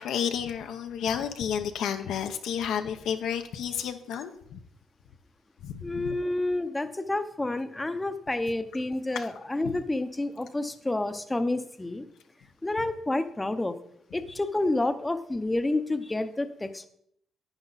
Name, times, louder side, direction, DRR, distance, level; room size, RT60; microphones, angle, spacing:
voice 1, 0.0-4.6 5.6-6.1 9.1-9.2, left 8 dB, 80° left, 6 dB, 0.9 m, -31 dB
voice 2, 5.8-12.0 12.6-13.8 14.1-16.9, left 2 dB, 15° left, 9 dB, 0.8 m, -29 dB
11.5 x 8.9 x 4.1 m, 0.69 s
cardioid pair, 90°, 0 cm